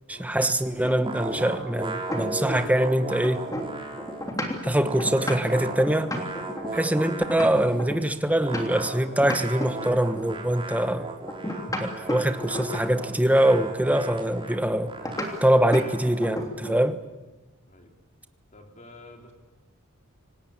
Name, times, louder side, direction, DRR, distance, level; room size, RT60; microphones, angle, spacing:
voice 1, 0.1-3.5 4.6-6.1 6.7-11.1 11.7-14.9 15.4-17.0, right 1 dB, 5° right, 10 dB, 1.2 m, -23 dB
sound 1, 0.8-2.8 3.1-8.9 9.2-10.4 11.3-13.1 15.0-15.3 15.7-15.9 16.2-16.9, left 1 dB, 15° left, 3.1 m, -33 dB
sound 2, 1.0-4.3 4.6-7.9 8.4-16.4, right 2 dB, 25° right, 3.6 m, -36 dB
voice 2, 18.5-19.3, left 2 dB, 35° left, 3 dB, 4.1 m, -49 dB
26.5 x 19.0 x 8.7 m, 1.2 s
head